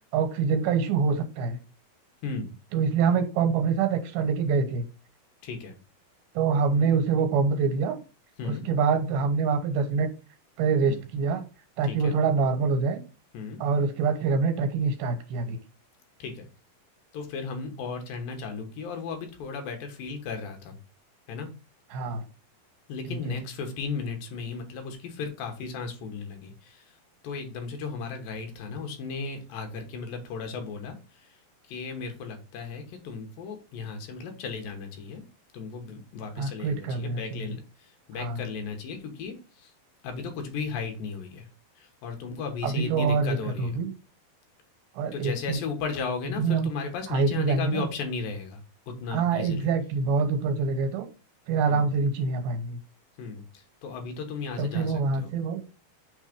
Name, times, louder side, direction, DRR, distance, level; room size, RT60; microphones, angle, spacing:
voice 1, 0.1-1.6 2.7-4.8 6.3-8.0 8.4-10.1 10.6-11.4 11.8-13.0 13.6-15.6 21.9-22.2 23.1-23.4 36.4-37.5 38.2-38.4 42.6-43.9 45.0-45.6 46.4-46.7 47.1-47.9 49.1-51.1 51.5-52.8 54.6-55.6, right 5 dB, 85° right, 5 dB, 3.0 m, -25 dB
voice 2, 5.4-5.8 8.4-8.6 10.8-11.0 11.8-12.2 13.3-13.6 16.2-16.5 17.1-20.8 21.3-21.5 22.9-26.9 27.2-31.4 31.7-35.2 35.5-39.7 40.0-41.5 41.8-43.8 45.1-49.7 51.7-51.9 53.2-55.3, left 5 dB, 75° left, 5 dB, 2.8 m, -35 dB
6.4 x 3.5 x 5.1 m, 0.32 s
omnidirectional pair, 4.2 m